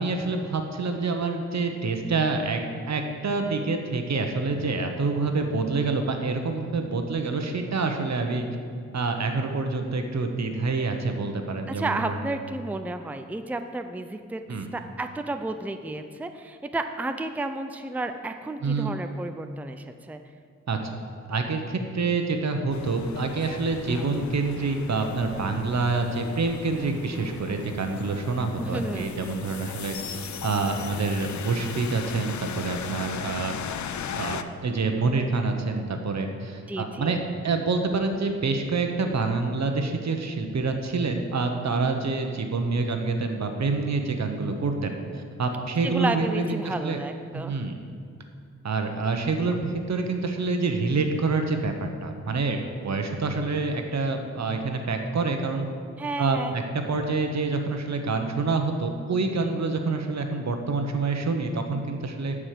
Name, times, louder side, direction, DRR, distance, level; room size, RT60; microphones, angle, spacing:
voice 1, 0.0-2.6 2.9-8.4 8.9-12.2 14.5-14.7 18.6-18.9 20.7-20.9 21.3-33.5 34.1-37.2 37.4-47.0 47.3-47.8 48.6-55.7 56.2-62.4, right 3 dB, 70° right, 5 dB, 1.1 m, -27 dB
voice 2, 11.7-14.4 14.7-20.2 28.6-29.2 36.7-37.2 45.8-47.6 56.0-56.6, right 2 dB, 5° right, 7 dB, 0.5 m, -32 dB
sound 1, 22.7-34.4, left 8 dB, 75° left, 0.5 m, -37 dB
11.5 x 4.9 x 7.6 m, 2.2 s
wide cardioid pair, 85°, 29 cm